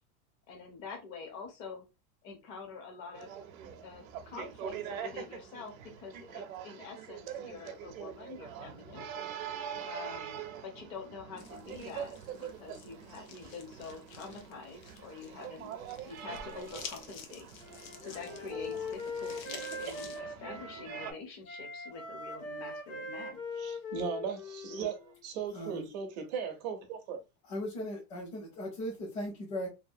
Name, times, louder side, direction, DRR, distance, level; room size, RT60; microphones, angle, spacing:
voice 1, 0.5-1.8 2.2-3.3 3.8-9.0 9.8-10.4 10.6-15.7 16.1-17.5 17.8-23.4, left 4 dB, 30° left, 0.6 m, -46 dB
sound 1, 3.1-21.1, right 8 dB, 70° right, 0.7 m, -44 dB
sound 2, 11.4-20.2, left 6 dB, 65° left, 0.8 m, -50 dB
Wind instrument woodwind instrument, 17.6-21.1 21.4-25.2, left 3 dB, 90° left, 1.5 m, -41 dB
voice 2, 23.6-27.2, right 6 dB, 30° right, 0.5 m, -37 dB
voice 3, 25.5-25.9 27.4-29.7, equal, 45° left, 1.1 m, -38 dB
2.7 x 2.5 x 2.5 m
supercardioid pair, 175°, 43 cm